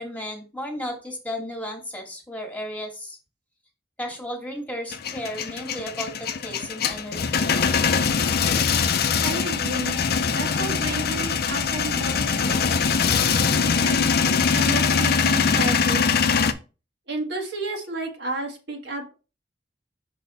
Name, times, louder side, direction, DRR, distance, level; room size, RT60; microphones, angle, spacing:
voice 1, 0.0-3.2 4.0-6.1 6.4-7.5, equal, 10° left, 0 dB, 1.5 m, -34 dB
Male speech man speaking / Vehicle / Engine starting, 4.9-16.5, left 6 dB, 60° left, 0.5 m, -22 dB
voice 2, 9.2-10.0 10.3-16.3 17.1-19.1, right 2 dB, 70° right, 1 dB, 1.5 m, -32 dB
5.8 x 4.1 x 4.0 m, 0.33 s
head